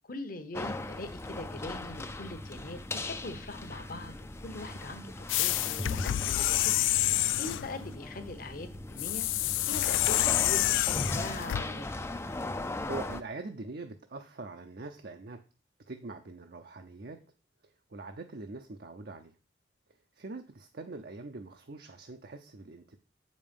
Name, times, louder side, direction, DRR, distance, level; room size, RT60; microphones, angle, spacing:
voice 1, 0.1-6.7 7.4-9.3 9.7-11.9, left 2 dB, 50° left, 9 dB, 1.0 m, -42 dB
sound 1, 0.5-13.2, left 2 dB, 15° left, 0.4 m, -38 dB
sound 2, 5.3-7.7 9.0-11.6, left 15 dB, 80° left, 0.3 m, -28 dB
voice 2, 12.9-15.4 15.9-17.2 17.9-19.4 20.1-23.0, right 3 dB, 55° right, 6 dB, 0.6 m, -43 dB
7.6 x 5.3 x 5.3 m, 0.35 s
head